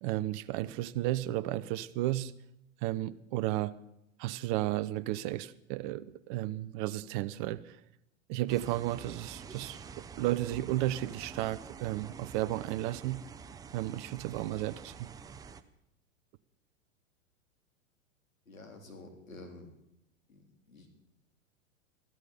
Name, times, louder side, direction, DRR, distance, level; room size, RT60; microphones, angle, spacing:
voice 1, 0.0-2.3 2.8-3.8 4.2-7.8 8.3-9.8 10.2-13.2 13.7-15.1, right 15 dB, 40° right, 0.7 m, -33 dB
sound 1, 8.5-15.6, right 6 dB, 10° right, 0.4 m, -48 dB
voice 2, 18.5-19.7 20.3-20.9, left 2 dB, 85° left, 3.6 m, -50 dB
15.0 x 13.0 x 5.6 m
figure-of-eight pair, 100°, 39 cm